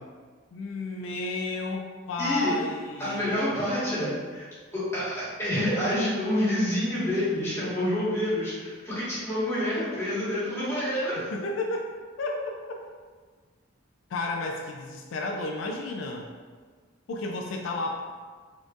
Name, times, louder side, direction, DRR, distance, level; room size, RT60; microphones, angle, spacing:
voice 1, 0.5-3.5 11.2-11.9 12.2-12.5 14.1-16.3 17.1-18.0, left 2 dB, 75° left, 1 dB, 0.4 m, -32 dB
voice 2, 2.2-2.5 3.0-4.5 4.7-11.2, left 1 dB, 15° left, -11 dB, 1.4 m, -28 dB
4.2 x 2.9 x 2.4 m, 1.5 s
head